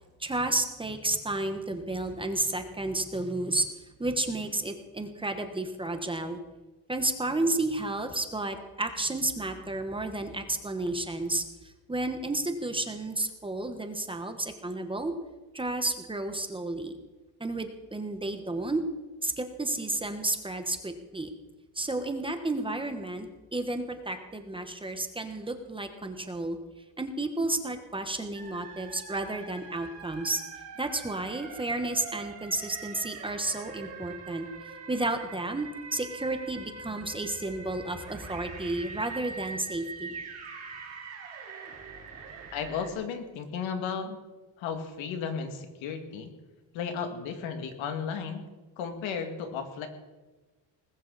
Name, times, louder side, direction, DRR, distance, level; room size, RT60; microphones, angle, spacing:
voice 1, 0.2-3.7 4.0-6.4 6.9-15.1 15.5-16.9 17.4-18.8 19.2-21.3 21.7-26.6 27.0-30.4 30.8-34.5 34.9-40.2, right 2 dB, 10° right, 6 dB, 1.2 m, -32 dB
sound 1, 28.3-42.9, right 4 dB, 35° right, 4.0 m, -43 dB
voice 2, 42.5-44.2 44.6-46.3 46.7-48.5 48.8-49.9, left 6 dB, 90° left, 6 dB, 2.4 m, -34 dB
20.0 x 15.0 x 4.1 m, 1.2 s
cardioid pair, 155°, 45 cm